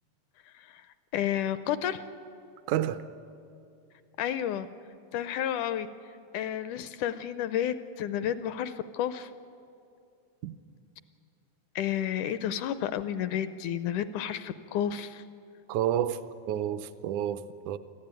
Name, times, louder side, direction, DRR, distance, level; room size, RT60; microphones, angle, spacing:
voice 1, 1.1-2.0 4.2-4.7 5.1-5.9 6.3-9.3 11.8-15.2, left 10 dB, 80° left, 1.8 m, -31 dB
voice 2, 2.7-3.0 10.4-10.5 15.7-17.8, right 11 dB, 80° right, 1.8 m, -30 dB
24.5 x 15.0 x 8.9 m
omnidirectional pair, 4.1 m